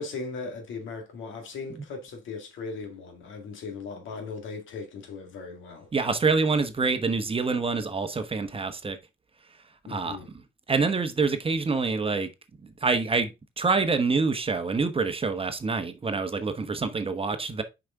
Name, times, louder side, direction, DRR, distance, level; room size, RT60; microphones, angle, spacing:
voice 1, 0.0-5.9 9.9-10.3, left 4 dB, 75° left, 1.9 m, -38 dB
voice 2, 5.9-9.0 9.9-10.2 10.7-12.3 12.6-17.6, right 4 dB, 30° right, 1.0 m, -26 dB
6.3 x 5.1 x 3.6 m
cardioid pair, 90°, 20 cm